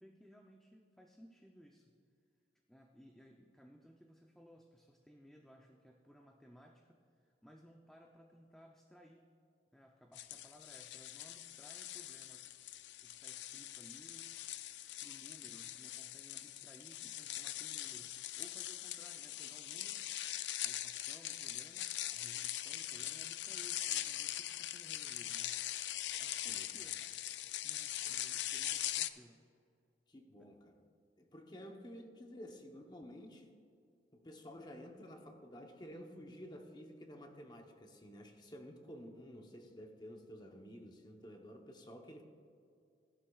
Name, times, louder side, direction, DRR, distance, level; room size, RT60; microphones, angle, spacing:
voice 1, 0.0-1.9 2.7-9.3 9.7-12.5 12.8-14.3 15.0-20.1 20.6-25.7 26.2-29.4 30.4-30.5, equal, 5° left, 1 dB, 0.5 m, -60 dB
sound 1, 10.1-29.1, left 13 dB, 85° left, 0.4 m, -42 dB
voice 2, 30.1-30.8 31.2-33.5 34.1-42.2, equal, 25° left, 3 dB, 0.8 m, -52 dB
16.0 x 11.5 x 2.3 m, 2.3 s
head